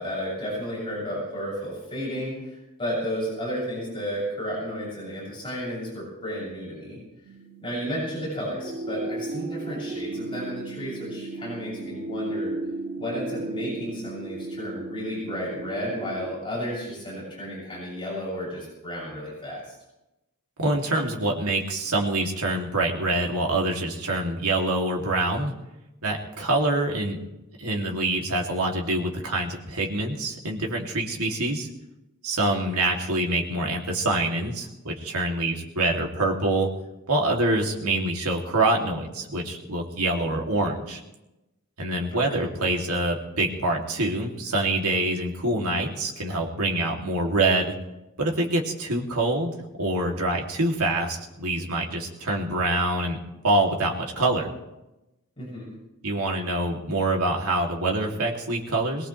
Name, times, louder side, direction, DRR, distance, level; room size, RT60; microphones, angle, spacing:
voice 1, 0.0-7.0 7.6-12.5 13.0-19.7 42.1-42.4 55.4-55.7, equal, 25° left, -6 dB, 7.1 m, -32 dB
sound 1, 7.2-16.3, right 2 dB, 50° right, 5.3 m, -35 dB
voice 2, 20.6-25.5 26.0-27.2 27.6-31.7 32.2-36.7 37.1-41.0 41.8-47.8 48.2-49.5 49.8-53.2 53.4-54.5 56.0-59.1, right 2 dB, 80° right, 0 dB, 2.7 m, -25 dB
22.0 x 19.5 x 3.3 m, 0.96 s
head